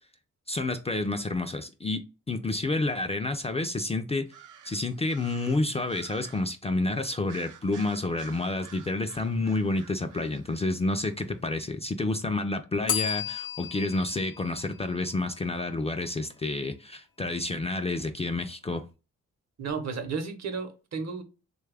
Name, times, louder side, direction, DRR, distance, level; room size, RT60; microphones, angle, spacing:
voice 1, 0.5-2.0 2.3-4.3 4.6-18.8, left 2 dB, 20° left, 0.3 m, -29 dB
sound 1, 4.3-6.6 7.2-11.3, right 7 dB, 90° right, 0.5 m, -51 dB
Bell, 12.9-15.7, left 9 dB, 80° left, 0.6 m, -35 dB
voice 2, 19.6-21.2, right 5 dB, 60° right, 0.8 m, -33 dB
3.1 x 2.3 x 3.3 m
cardioid pair, 70°, 30 cm